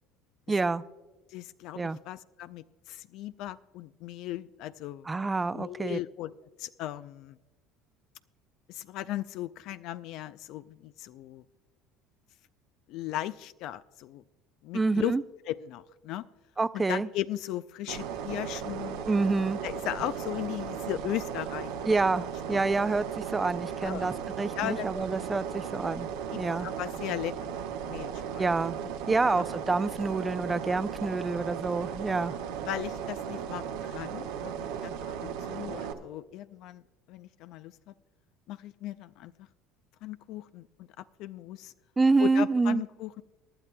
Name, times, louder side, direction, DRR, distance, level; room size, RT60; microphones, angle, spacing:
voice 1, 0.5-0.8 1.8-2.0 5.1-6.0 14.7-15.2 16.6-17.1 19.0-19.6 21.9-26.1 26.4-26.7 28.4-28.8 29.1-32.3 42.0-42.8, right 3 dB, 20° right, 16 dB, 0.4 m, -27 dB
voice 2, 1.3-5.1 5.5-7.4 8.7-11.4 12.9-14.2 14.6-15.1 15.5-16.2 16.7-19.0 19.6-21.9 22.5-22.6 23.8-24.1 24.6-24.9 26.3-28.5 28.8-28.9 29.3-29.4 32.6-36.8 37.1-37.9 38.5-39.5 40.0-41.7 42.2-43.2, left 14 dB, 65° left, 13 dB, 0.3 m, -37 dB
sound 1, 17.9-35.9, right 8 dB, 80° right, 1.1 m, -36 dB
23.0 x 10.5 x 2.2 m, 1.2 s
supercardioid pair, 85°, 0 cm